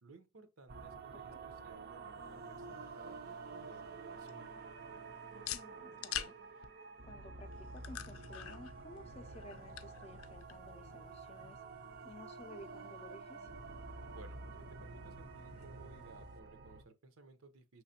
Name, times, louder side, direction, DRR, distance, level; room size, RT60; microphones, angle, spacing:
voice 1, 0.0-4.5 14.1-17.8, right 3 dB, 85° right, 0.8 m, -58 dB
sound 1, 0.7-16.8, right 4 dB, 45° right, 0.5 m, -49 dB
sound 2, 2.1-16.4, left 9 dB, 90° left, 0.5 m, -50 dB
voice 2, 5.5-6.4 7.0-11.6 12.0-13.5, left 1 dB, 30° left, 0.5 m, -54 dB
5.8 x 3.2 x 2.7 m
head